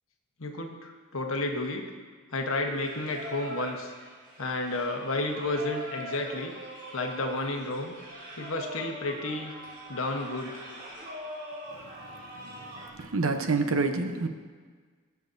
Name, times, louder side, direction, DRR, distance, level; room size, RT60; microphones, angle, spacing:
voice 1, 0.4-1.8 2.3-3.9 4.4-6.5 6.9-7.9 8.3-9.5 9.9-10.6, left 2 dB, 70° left, 3 dB, 1.1 m, -31 dB
Singing, 2.7-12.9, equal, 40° right, 2.1 m, -42 dB
voice 2, 12.4-14.3, right 3 dB, 75° right, 6 dB, 0.8 m, -28 dB
19.5 x 7.0 x 2.7 m, 1.5 s
head